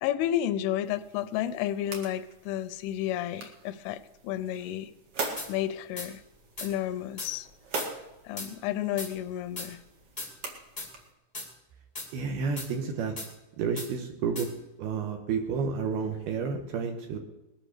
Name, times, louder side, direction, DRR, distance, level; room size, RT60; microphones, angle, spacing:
voice 1, 0.0-4.9 5.5-6.2 6.6-7.5 8.2-9.8, left 11 dB, 85° left, 13 dB, 3.1 m, -31 dB
sound 1, 0.8-11.1, right 3 dB, 45° right, 2.1 m, -42 dB
sound 2, 5.4-5.5 6.0-6.1 6.6-6.7 7.2-7.3 7.8-7.9 8.4-8.5 9.0-9.1 9.6-9.7 10.2-10.3 10.8-10.9 11.3-11.5 11.9-12.1 12.6-12.7 13.2-13.3 13.8-13.9 14.3-14.5, left 2 dB, 35° left, 0.7 m, -37 dB
voice 2, 12.1-13.2 13.6-14.5 14.8-17.2, right 5 dB, 70° right, 4 dB, 2.6 m, -30 dB
20.5 x 8.9 x 6.6 m, 1.0 s
omnidirectional pair, 5.5 m